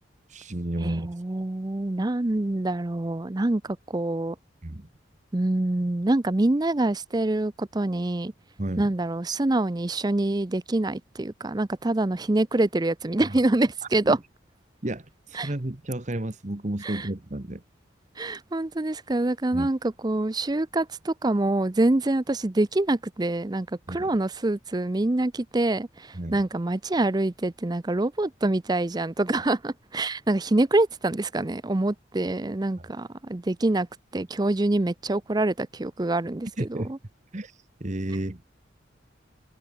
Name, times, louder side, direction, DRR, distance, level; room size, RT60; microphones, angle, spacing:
voice 1, 0.3-1.1 4.6-4.9 8.6-8.9 13.2-13.4 14.0-14.2 14.8-17.6 19.5-19.7 23.9-24.1 26.1-26.4 36.6-36.9 37.3-38.4, right 1 dB, 35° right, 1.2 m, -32 dB
voice 2, 0.8-4.4 5.3-8.3 8.8-14.2 15.3-15.5 16.8-17.1 18.2-33.9 34.1-37.0, right 2 dB, 20° right, 0.5 m, -25 dB
head